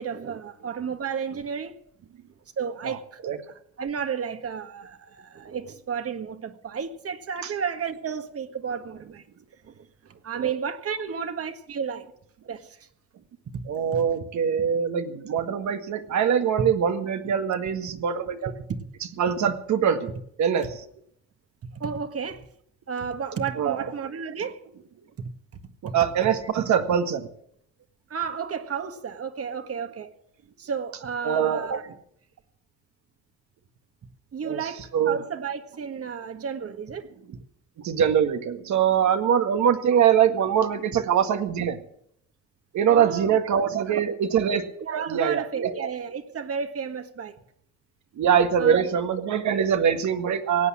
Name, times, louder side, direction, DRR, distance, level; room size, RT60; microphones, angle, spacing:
voice 1, 0.0-1.7 2.6-3.2 3.8-9.2 9.6-12.0 12.5-12.8 13.5-13.6 13.9-14.0 18.7-18.8 21.8-22.5 22.9-24.6 25.2-25.3 25.9-26.0 28.1-30.1 30.6-31.8 34.3-37.1 42.9-43.4 43.7-44.4 44.8-47.4 48.6-48.9, right 6 dB, 50° right, 1.8 m, -32 dB
voice 2, 13.7-18.5 19.2-20.1 20.4-20.8 23.6-23.9 25.8-27.3 31.2-31.7 34.4-35.2 37.3-37.4 37.8-41.8 42.7-44.6 45.1-45.4 48.2-50.7, right 8 dB, 70° right, 1.9 m, -23 dB
18.0 x 8.3 x 8.7 m
cardioid pair, 90°, 30 cm